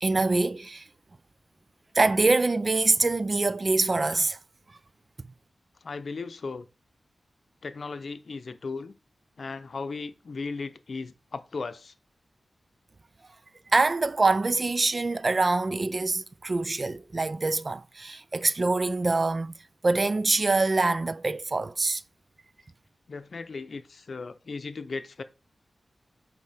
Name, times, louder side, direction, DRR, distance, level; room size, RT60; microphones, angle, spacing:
voice 1, 0.0-0.8 1.9-4.4 13.7-19.5 19.8-22.0, right 3 dB, 40° right, 0.4 m, -25 dB
voice 2, 5.8-6.7 7.6-8.9 9.4-11.9 23.1-25.2, left 4 dB, 65° left, 0.7 m, -36 dB
8.2 x 4.4 x 3.5 m
wide cardioid pair, 70°, 0 cm